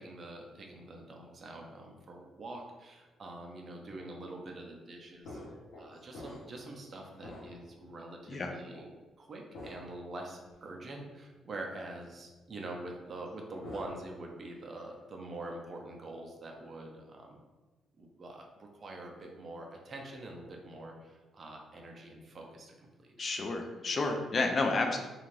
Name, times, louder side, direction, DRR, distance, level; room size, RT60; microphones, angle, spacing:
voice 1, 0.0-5.4 5.8-8.9 9.2-17.4 18.0-23.1, right 2 dB, 40° right, 1 dB, 0.5 m, -45 dB
sound 1, 5.2-6.7 7.1-7.8 8.7-8.9 9.5-10.0 10.5-10.6 13.3-14.2 14.5-14.9, left 1 dB, 75° left, 0.8 m, -47 dB
voice 2, 23.2-25.0, left 3 dB, 40° left, 3 dB, 0.4 m, -30 dB
2.5 x 2.3 x 3.2 m, 1.2 s
cardioid pair, 90°, 0 cm